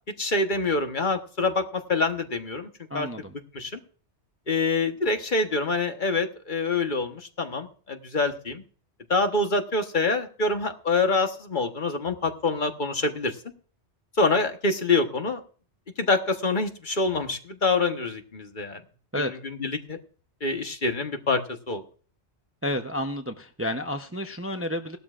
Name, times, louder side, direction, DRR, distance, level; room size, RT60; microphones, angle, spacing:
voice 1, 0.2-2.7 2.9-3.1 3.5-3.8 4.5-8.6 9.1-13.4 14.2-15.4 16.0-18.8 19.2-20.0 20.4-21.8, left 3 dB, 45° left, 6 dB, 1.4 m, -26 dB
voice 2, 2.9-3.3 19.1-19.3 22.6-25.0, left 1 dB, 15° right, 6 dB, 0.7 m, -30 dB
18.5 x 12.5 x 2.5 m, 0.41 s
omnidirectional pair, 1.2 m